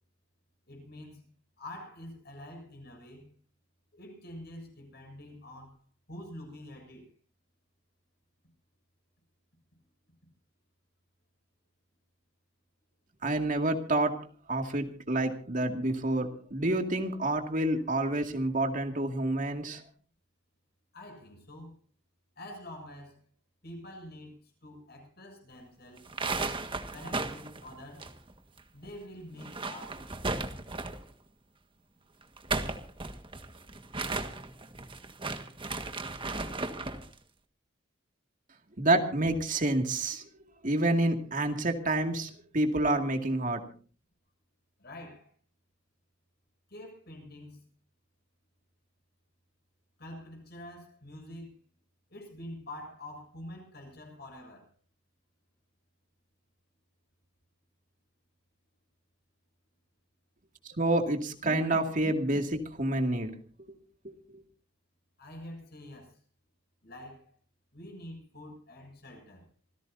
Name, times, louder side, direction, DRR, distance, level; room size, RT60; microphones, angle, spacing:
voice 1, 0.7-1.2 1.6-3.3 3.9-5.8 6.1-7.1 20.9-21.8 22.4-23.2 23.6-26.5 26.9-28.1 28.7-30.1 44.8-45.3 46.7-47.6 50.0-51.6 52.1-54.7 65.2-66.1 66.8-67.3 67.7-69.5, left 1 dB, 55° left, 7.5 m, -46 dB
voice 2, 13.2-14.2 14.5-19.8 38.8-40.2 40.6-43.6 60.8-63.3 64.0-64.1, right 2 dB, 45° right, 2.3 m, -28 dB
sound 1, 26.0-28.6 28.9-29.0 29.3-31.1 32.2-37.1, right 3 dB, 25° right, 1.6 m, -35 dB
27.5 x 16.0 x 2.7 m
head